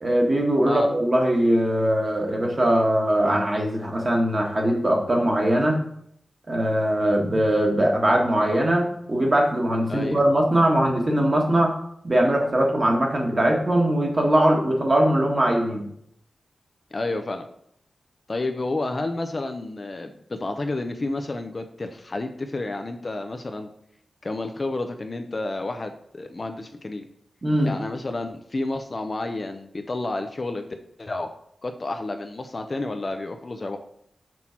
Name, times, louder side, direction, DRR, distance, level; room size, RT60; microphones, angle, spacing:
voice 1, 0.0-5.8 6.5-11.7 12.0-15.8 27.4-27.7, right 1 dB, 30° right, 1 dB, 1.5 m, -21 dB
voice 2, 9.9-10.2 16.9-17.5 18.3-23.7 24.2-27.1 27.6-30.6 31.0-31.3 31.6-33.8, left 2 dB, 35° left, 6 dB, 0.6 m, -30 dB
6.2 x 5.7 x 4.4 m, 0.70 s
wide cardioid pair, 140°, 0 cm